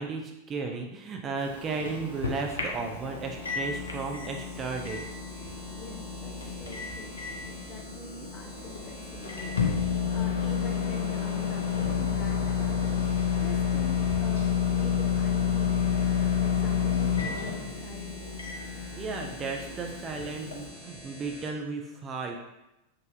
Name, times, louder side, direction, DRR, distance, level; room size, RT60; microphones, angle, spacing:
voice 1, 0.0-5.0 19.0-22.4, right 4 dB, 25° right, 2 dB, 0.3 m, -34 dB
Microwave oven, 1.4-20.7, left 7 dB, 75° left, 0.5 m, -30 dB
sound 1, 1.5-21.5, equal, ahead, 1.0 m, -47 dB
voice 2, 5.7-7.2 7.5-18.4, left 2 dB, 25° left, 2 dB, 0.6 m, -44 dB
3.8 x 2.5 x 2.6 m, 0.93 s
figure-of-eight pair, 90°, 0 cm